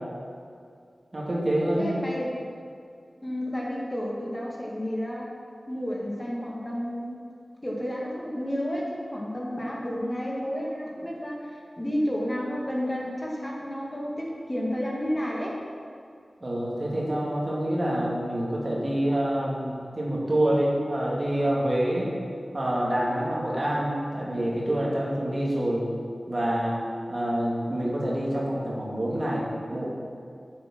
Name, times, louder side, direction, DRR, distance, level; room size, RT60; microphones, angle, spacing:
voice 1, 1.1-1.9 16.4-22.1 22.5-25.9 26.3-26.8 27.1-29.9, right 1 dB, 45° right, -4 dB, 2.4 m, -27 dB
voice 2, 1.8-2.4 3.2-5.3 5.7-7.2 7.6-15.6, equal, 25° left, -3 dB, 2.2 m, -31 dB
8.5 x 7.5 x 6.0 m, 2.3 s
wide cardioid pair, 50°, 0 cm